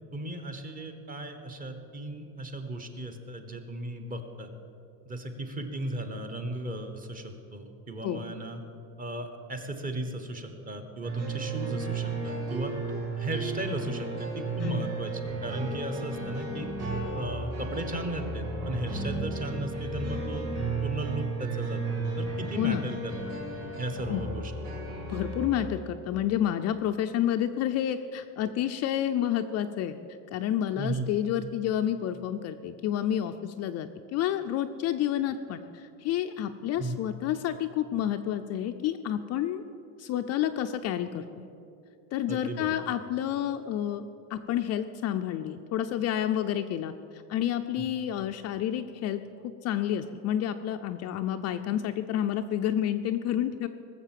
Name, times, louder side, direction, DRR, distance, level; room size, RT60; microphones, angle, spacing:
voice 1, 0.1-4.5 5.0-8.6 9.0-12.7 13.2-16.7 17.1-20.5 20.8-23.1 23.8-24.5 30.8-31.0 36.8-37.0 42.3-42.8 47.8-47.9, right 1 dB, 20° right, 6 dB, 1.1 m, -36 dB
sound 1, 11.0-25.6, right 3 dB, 40° right, 3.7 m, -34 dB
voice 2, 22.5-22.9 24.1-24.3 25.1-29.9 30.3-39.6 40.0-41.5 42.1-49.2 49.6-53.7, left 10 dB, 40° left, 7 dB, 0.4 m, -29 dB
19.0 x 7.3 x 7.5 m, 2.6 s
cardioid pair, 165°, 40 cm